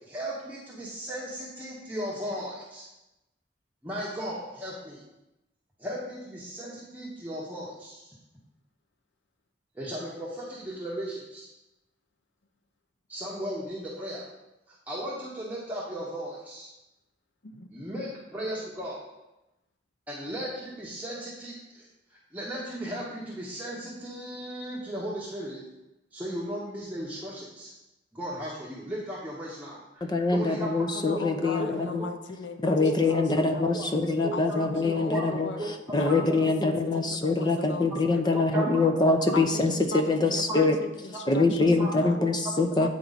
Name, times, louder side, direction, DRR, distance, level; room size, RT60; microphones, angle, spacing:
voice 1, 0.0-2.8 3.8-5.0 5.8-8.1 9.7-11.5 13.1-14.3 14.7-16.7 17.7-19.0 20.1-21.8 22.3-25.6 26.1-27.7 28.1-30.9 31.4-31.7 32.0-32.1 32.8-33.0 33.7-33.9 34.2-34.6 35.1-35.3 35.6-35.7 36.0-36.2 38.5-38.9 40.5-40.6 41.8-41.9, right 1 dB, 10° right, -6 dB, 1.0 m, -36 dB
voice 2, 30.0-32.1 32.6-35.5 35.9-40.8 41.3-42.9, left 3 dB, 25° left, 5 dB, 0.6 m, -24 dB
voice 3, 30.9-33.8 34.3-38.7 39.3-42.2 42.8-42.9, left 3 dB, 80° left, 8 dB, 0.7 m, -39 dB
8.6 x 4.5 x 4.0 m, 0.94 s
head